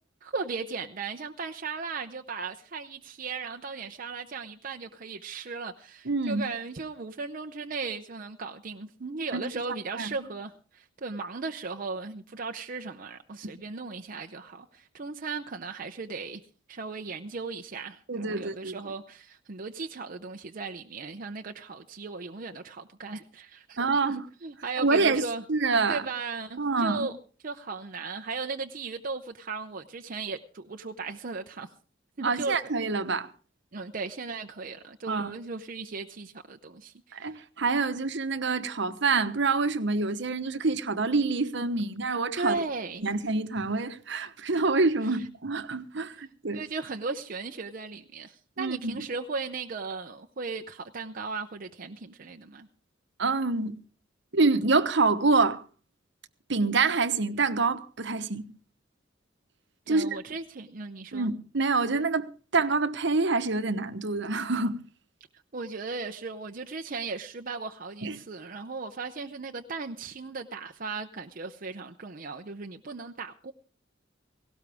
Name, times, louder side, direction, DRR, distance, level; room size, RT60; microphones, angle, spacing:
voice 1, 0.2-16.4 16.7-25.4 25.9-27.1 27.4-31.7 32.2-32.7 33.7-37.4 42.4-43.0 45.0-45.3 46.1-46.3 46.5-52.7 59.9-61.3 65.5-73.5, right 4 dB, 45° right, 0.7 m, -37 dB
voice 2, 6.0-6.5 9.3-9.4 10.0-10.1 18.1-18.8 23.8-24.3 24.8-25.2 25.5-26.0 26.6-27.1 32.2-33.3 35.1-35.3 37.1-42.6 43.0-46.6 48.6-49.0 53.2-53.7 54.3-55.6 56.5-58.5 59.9-60.2 61.1-64.8 68.0-68.2, right 3 dB, 65° right, 1.1 m, -26 dB
18.0 x 17.5 x 3.5 m
head